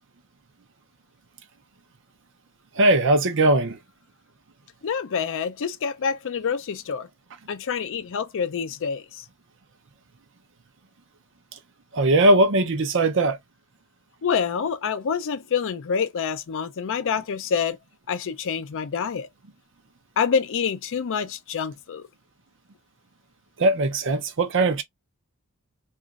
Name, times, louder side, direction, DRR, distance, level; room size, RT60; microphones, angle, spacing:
voice 1, 2.7-3.8 11.9-13.4 23.6-24.8, right 2 dB, 60° right, 0.6 m, -19 dB
voice 2, 4.8-7.1 7.5-9.2 14.2-17.8 18.1-19.3 20.2-22.0, left 6 dB, 60° left, 0.4 m, -27 dB
3.0 x 2.5 x 2.3 m
head